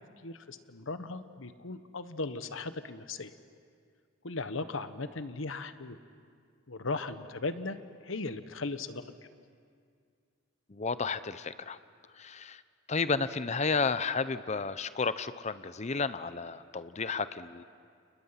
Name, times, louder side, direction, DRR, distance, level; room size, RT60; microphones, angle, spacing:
voice 1, 0.2-3.3 4.2-6.0 6.7-7.8 8.0-9.0, left 3 dB, 75° left, 11 dB, 1.1 m, -37 dB
voice 2, 10.7-11.8 12.2-12.6 12.9-17.6, left 4 dB, 35° left, 14 dB, 0.7 m, -32 dB
30.0 x 29.5 x 5.8 m, 2.2 s
head